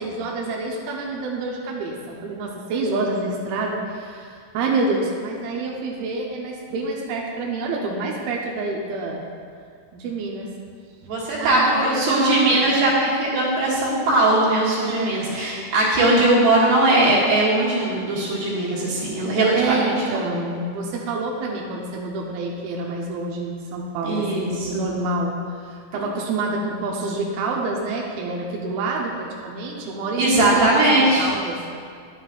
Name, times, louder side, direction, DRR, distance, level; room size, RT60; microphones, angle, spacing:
voice 1, 0.0-9.2 9.9-10.5 11.4-12.7 14.8-15.1 16.1-16.3 19.5-31.6, right 3 dB, 85° right, -1 dB, 2.1 m, -27 dB
voice 2, 11.1-19.9 24.0-24.8 30.2-31.3, right 2 dB, 65° right, -6 dB, 3.1 m, -19 dB
10.5 x 7.3 x 2.3 m, 2.2 s
omnidirectional pair, 5.1 m